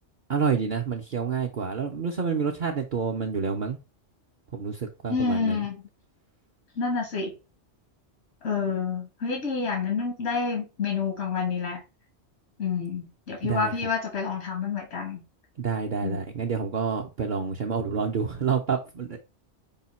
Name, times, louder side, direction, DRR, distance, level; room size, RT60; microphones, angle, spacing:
voice 1, 0.3-3.8 4.5-5.7 13.4-13.7 15.6-19.2, right 6 dB, 55° right, 0.7 m, -28 dB
voice 2, 5.1-5.8 6.7-7.3 8.4-11.8 12.6-15.2 16.0-16.2, left 5 dB, 85° left, 1.5 m, -28 dB
5.5 x 2.2 x 4.1 m
omnidirectional pair, 1.2 m